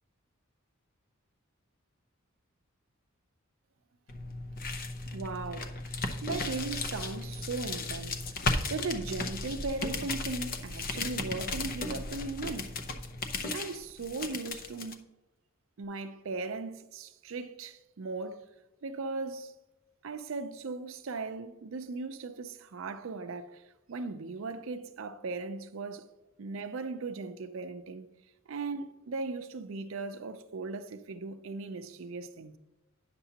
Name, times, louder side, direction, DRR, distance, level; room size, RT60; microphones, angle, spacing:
sound 1, 4.1-15.0, left 3 dB, 45° left, 0.6 m, -35 dB
voice 1, 5.1-5.8 6.2-8.4 8.7-12.7 13.5-15.0 15.8-18.4 18.8-19.5 20.0-23.6 23.9-26.0 26.4-28.1 28.5-32.6, right 3 dB, 70° right, 0.5 m, -38 dB
9.9 x 6.8 x 2.8 m
head